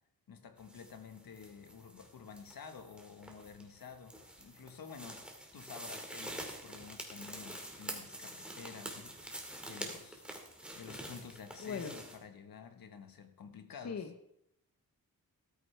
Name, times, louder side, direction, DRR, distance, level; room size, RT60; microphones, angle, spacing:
voice 1, 0.3-5.2 5.5-10.2 10.7-14.0, left 6 dB, 70° left, 7 dB, 1.4 m, -51 dB
sound 1, 0.6-12.2, right 1 dB, 5° right, 2.0 m, -47 dB
voice 2, 11.6-12.0 13.7-14.3, left 6 dB, 45° left, 7 dB, 0.8 m, -40 dB
13.5 x 13.0 x 3.4 m, 0.78 s
wide cardioid pair, 140°, 36 cm